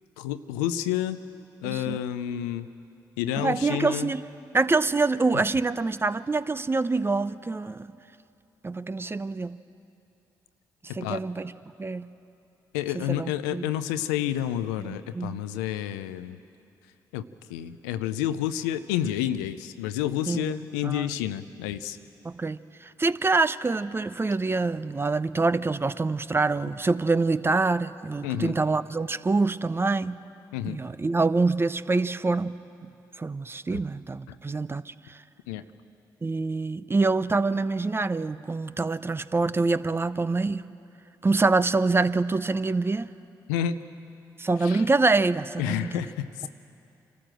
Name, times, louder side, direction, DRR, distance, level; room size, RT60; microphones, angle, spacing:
voice 1, 0.2-1.2 1.6-2.7 3.2-4.1 10.9-11.2 12.7-16.4 17.1-17.2 17.5-22.0 28.2-28.6 30.5-30.8 34.3-34.4 35.5-35.6 43.5-43.8 44.6-44.8 45.6-46.5, left 11 dB, 85° left, 12 dB, 0.5 m, -29 dB
voice 2, 1.6-2.0 3.4-4.2 4.5-7.9 8.6-9.5 10.9-11.5 11.8-12.1 12.9-13.6 14.8-15.3 20.3-20.5 20.8-21.1 22.2-30.2 30.7-32.6 33.2-35.2 36.2-40.7 41.2-43.1 44.4-46.0, right 3 dB, 25° right, 15 dB, 0.7 m, -25 dB
26.0 x 13.5 x 7.7 m, 2.7 s
hypercardioid pair, 45°, 9 cm